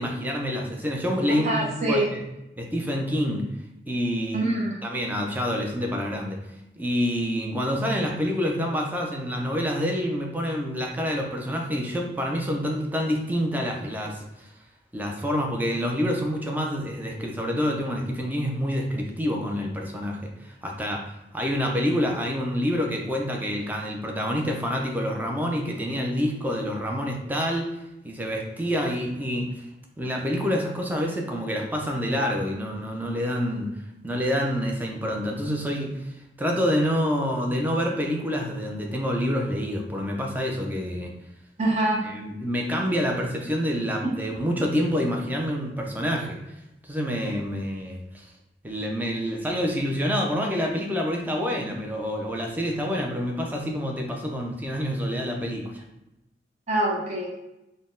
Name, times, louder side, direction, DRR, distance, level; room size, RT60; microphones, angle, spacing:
voice 1, 0.0-2.2 2.6-3.4 3.9-4.5 4.8-6.4 6.8-14.5 14.9-21.0 21.3-27.7 28.0-29.5 30.0-33.7 34.0-36.1 36.4-41.1 42.0-46.4 46.8-48.2 48.6-55.8, equal, 10° right, 1 dB, 0.5 m, -27 dB
voice 2, 1.3-2.1 4.3-4.8 41.6-42.0 44.0-44.1 56.7-57.3, right 1 dB, 40° right, -2 dB, 0.8 m, -25 dB
4.0 x 2.1 x 3.7 m, 0.91 s
head